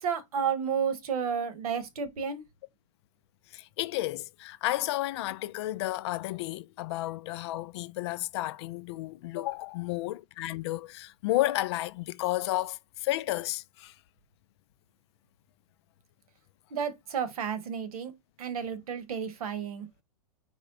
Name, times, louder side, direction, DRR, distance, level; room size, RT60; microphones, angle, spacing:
voice 1, 0.0-2.4 16.7-18.1 18.4-19.9, right 7 dB, 75° right, 1.2 m, -31 dB
voice 2, 3.5-13.9, left 16 dB, 45° left, 0.4 m, -32 dB
4.3 x 3.3 x 3.7 m
supercardioid pair, 150°, 19 cm